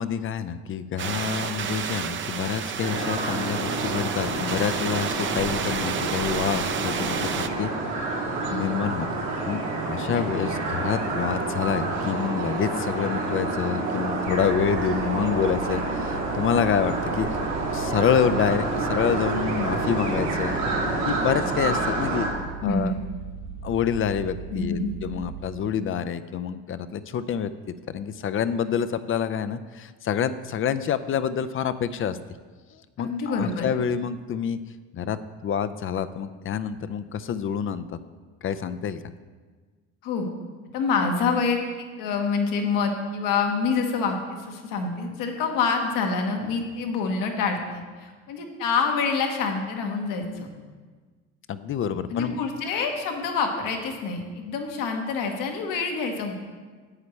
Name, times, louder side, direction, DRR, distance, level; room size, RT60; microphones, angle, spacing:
voice 1, 0.0-7.7 8.5-9.1 9.5-17.4 17.7-20.6 21.1-22.3 22.6-22.9 23.6-27.5 27.9-32.2 33.0-34.6 34.9-35.2 35.4-38.0 38.4-39.0 51.5-52.4, left 8 dB, 40° left, 13 dB, 0.5 m, -27 dB
sound 1, 1.0-7.5, right 7 dB, 35° right, 0.6 m, -31 dB
sound 2, 2.8-22.3, right 2 dB, 85° right, 3.0 m, -28 dB
sound 3, 14.2-25.4, right 7 dB, 65° right, 1.4 m, -38 dB
voice 2, 22.6-23.0 24.5-24.9 33.0-33.7 40.0-40.3 40.7-50.5 52.1-56.3, left 5 dB, 75° left, 3 dB, 1.4 m, -27 dB
9.6 x 8.3 x 3.2 m, 1.4 s
supercardioid pair, 80°, 34 cm